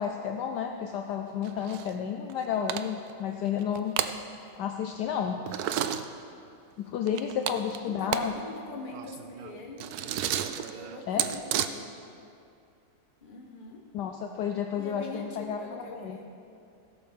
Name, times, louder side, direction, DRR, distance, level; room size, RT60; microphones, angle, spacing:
voice 1, 0.0-4.0 4.6-5.4 6.8-8.3 11.1-11.3 13.9-16.2, left 8 dB, 70° left, 4 dB, 1.1 m, -31 dB
sound 1, 1.4-1.9 2.3-2.4 2.7-3.1 3.6-4.1 5.5-6.0 7.1-8.3 8.6-8.7 8.9-11.7, right 10 dB, 80° right, 0.8 m, -31 dB
voice 2, 7.9-9.9 10.5-11.9 13.2-13.9 14.8-16.3, left 3 dB, 30° left, 1 dB, 1.1 m, -43 dB
16.5 x 6.7 x 5.3 m, 2.5 s
omnidirectional pair, 2.1 m